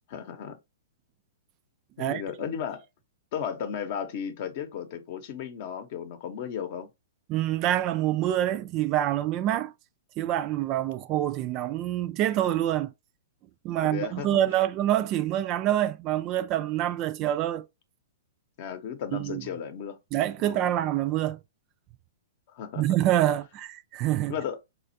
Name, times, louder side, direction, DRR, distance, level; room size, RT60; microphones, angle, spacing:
voice 1, 0.1-0.6 2.0-2.8 3.3-6.9 13.8-14.4 18.6-20.0 20.4-20.8 22.5-22.9 24.3-24.6, left 8 dB, 50° left, 0.7 m, -35 dB
voice 2, 7.3-9.7 10.2-12.9 13.6-17.7 19.1-19.4 20.1-21.4 22.8-24.3, right 12 dB, 35° right, 0.3 m, -26 dB
4.2 x 2.3 x 2.6 m
hypercardioid pair, 135°, 0 cm